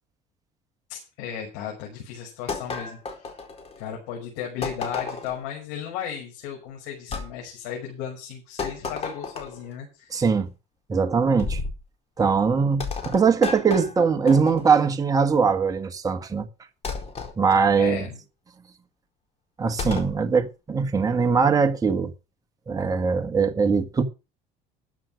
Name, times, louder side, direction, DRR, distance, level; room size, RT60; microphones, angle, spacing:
voice 1, 0.9-3.3 3.8-10.1 17.8-18.2, left 8 dB, 90° left, 6.2 m, -35 dB
sound 1, 2.5-3.9 4.6-5.4 7.1-7.3 8.6-9.7 11.4-11.8 12.8-14.9 16.8-17.3 19.8-20.2, left 5 dB, 40° left, 4.4 m, -32 dB
voice 2, 10.1-10.5 10.9-11.6 12.2-16.4 17.4-18.0 19.6-22.1 22.7-24.0, right 5 dB, 20° right, 1.5 m, -21 dB
13.5 x 7.9 x 6.3 m
cardioid pair, 120°, 16 cm